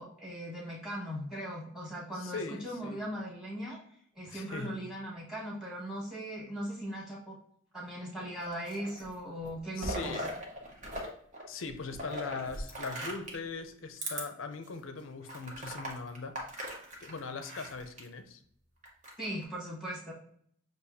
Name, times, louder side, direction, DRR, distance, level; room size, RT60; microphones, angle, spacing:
voice 1, 0.0-3.8 4.2-7.4 7.7-10.1 19.2-20.1, equal, ahead, -4 dB, 1.4 m, -39 dB
voice 2, 2.1-3.0 4.3-4.8 9.8-10.3 11.5-16.4 17.0-18.4, left 4 dB, 65° left, 9 dB, 0.5 m, -40 dB
sound 1, 8.4-9.1 9.4-11.1 11.3-13.5 14.0-14.2 14.7-14.8 15.3-18.0 18.8-19.4, right 1 dB, 40° right, 1.0 m, -40 dB
6.4 x 2.6 x 2.7 m, 0.64 s
head